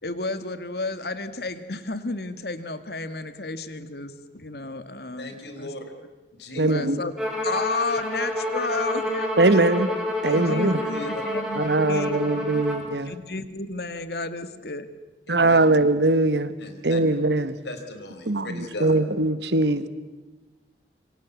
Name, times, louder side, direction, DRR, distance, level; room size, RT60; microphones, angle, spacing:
voice 1, 0.0-5.7 6.7-7.1 7.4-9.8 10.2-12.6 13.0-14.9, left 3 dB, 65° left, 1.9 m, -32 dB
voice 2, 5.2-5.9 6.4-6.7 10.3-11.1 15.3-15.7 16.6-17.0 17.6-19.0, left 2 dB, 80° left, 4.3 m, -37 dB
voice 3, 6.6-7.0 9.4-9.9 10.2-10.8 11.6-13.1 15.3-16.5 16.8-17.5 18.3-19.9, right 2 dB, 85° right, 1.5 m, -21 dB
Bowed string instrument, 7.2-12.9, left 1 dB, ahead, 7.5 m, -29 dB
27.0 x 24.5 x 8.4 m
head